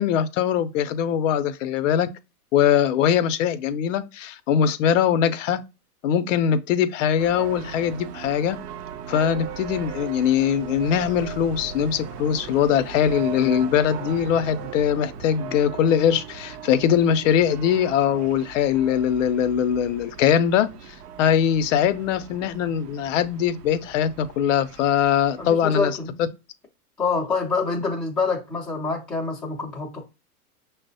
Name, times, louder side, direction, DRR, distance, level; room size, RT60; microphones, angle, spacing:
voice 1, 0.0-2.1 2.5-5.6 6.0-8.6 9.1-20.7 21.2-26.3, left 9 dB, 55° left, 0.5 m, -21 dB
sound 1, 7.2-25.5, right 8 dB, 75° right, 0.7 m, -38 dB
voice 2, 25.4-26.2 27.0-30.0, left 4 dB, ahead, 0.4 m, -26 dB
5.9 x 2.0 x 2.6 m
hypercardioid pair, 125°, 47 cm